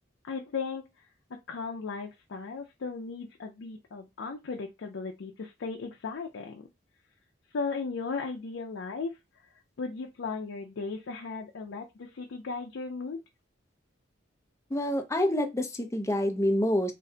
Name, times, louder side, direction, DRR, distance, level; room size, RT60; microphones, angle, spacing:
voice 1, 0.3-0.9 1.3-6.6 7.5-9.1 9.8-13.2, left 4 dB, 85° left, 0.4 m, -36 dB
voice 2, 14.7-16.9, left 1 dB, 15° left, 0.5 m, -27 dB
2.5 x 2.1 x 3.7 m
head